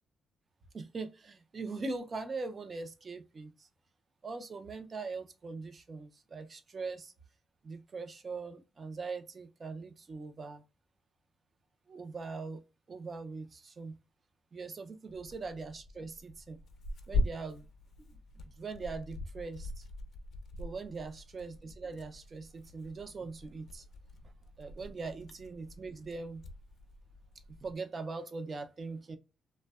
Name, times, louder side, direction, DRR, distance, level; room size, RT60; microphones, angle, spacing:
voice 1, 0.7-3.7 4.2-7.1 7.6-10.6 11.9-12.6 12.9-14.0 14.5-16.6 17.1-17.6 18.4-19.9 20.6-23.8 24.6-26.4 27.6-29.2, right 4 dB, 40° right, 0.5 m, -41 dB
Tearing, 15.1-27.7, left 2 dB, 60° left, 0.6 m, -41 dB
2.6 x 2.1 x 2.3 m
cardioid pair, 90°, 0 cm